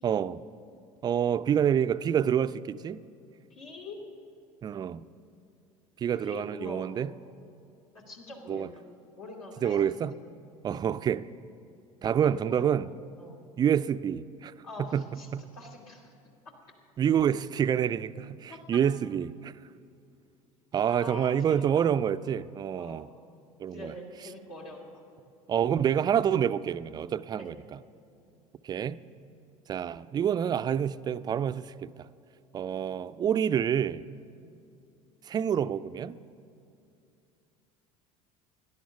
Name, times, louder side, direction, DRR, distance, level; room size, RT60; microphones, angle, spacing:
voice 1, 0.0-0.4 1.0-3.0 4.6-5.0 6.0-7.1 8.5-8.7 9.6-10.1 10.6-11.3 12.0-12.9 13.6-14.5 14.8-15.1 15.3-15.4 17.0-19.5 20.7-23.1 23.6-23.9 25.5-27.8 28.6-29.0 29.7-32.1 32.5-34.0 35.2-36.2, right 9 dB, 25° right, 0.4 m, -27 dB
voice 2, 3.5-4.0 6.1-6.9 7.9-8.9 9.2-9.9 10.7-10.9 12.3-12.7 13.2-13.4 14.6-16.1 18.5-18.8 20.9-21.9 22.8-23.1 23.7-25.0 27.3-27.5 28.3-28.4 34.4-34.5, left 2 dB, 70° left, 2.6 m, -44 dB
17.5 x 11.0 x 6.9 m
figure-of-eight pair, 70°, 18 cm